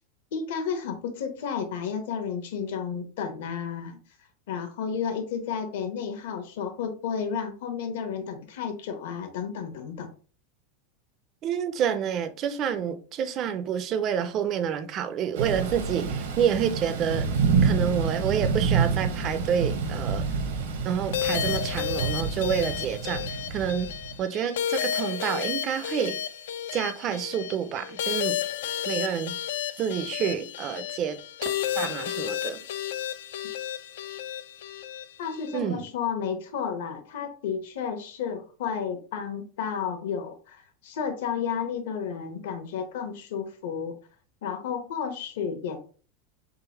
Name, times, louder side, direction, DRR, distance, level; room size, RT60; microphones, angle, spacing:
voice 1, 0.3-4.0 4.5-10.1 35.2-44.0 44.4-45.8, left 7 dB, 70° left, 0.9 m, -32 dB
voice 2, 11.4-17.3 17.6-20.3 20.8-23.3 23.5-23.9 24.2-26.2 26.7-28.4 28.9-29.4 29.8-31.5 31.7-32.6 35.5-35.9, right 8 dB, 30° right, 0.4 m, -28 dB
Thunder / Rain, 15.3-24.2, right 5 dB, 80° right, 0.9 m, -28 dB
sound 1, 21.1-35.6, left 10 dB, 85° left, 0.4 m, -32 dB
3.9 x 3.8 x 2.9 m
supercardioid pair, 170°, 0 cm